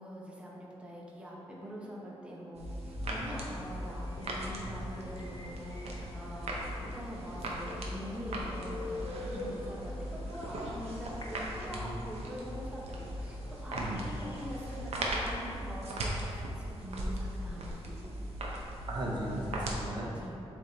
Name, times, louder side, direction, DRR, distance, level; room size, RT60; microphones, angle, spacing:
voice 1, 0.0-18.2 20.1-20.4, equal, 10° right, -4 dB, 0.8 m, -44 dB
sound 1, 1.5-10.2, equal, 60° left, 1.4 m, -54 dB
sound 2, 2.5-19.8, right 1 dB, 85° right, 0.8 m, -38 dB
voice 2, 3.0-3.3 4.6-4.8 11.7-12.0 13.7-14.0 18.9-20.4, right 1 dB, 45° right, -3 dB, 0.6 m, -37 dB
sound 3, 3.5-14.9, left 2 dB, 45° left, 0.6 m, -47 dB
7.3 x 3.6 x 3.9 m, 2.9 s
wide cardioid pair, 170°, 11 cm